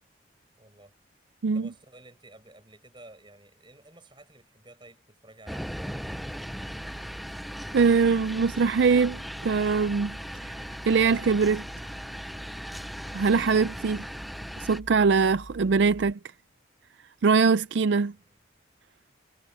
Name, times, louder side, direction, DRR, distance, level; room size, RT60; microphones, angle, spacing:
voice 1, 0.6-0.9 1.5-6.3 18.1-18.4, right 2 dB, 25° right, 6.7 m, -53 dB
sound 1, 5.5-14.8, equal, ahead, 0.4 m, -38 dB
sound 2, 5.6-16.1, equal, 80° right, 5.8 m, -45 dB
voice 2, 7.7-10.2 10.4-10.5 10.9-11.6 13.1-14.1 14.6-16.2 17.2-18.1, right 5 dB, 65° right, 0.4 m, -22 dB
head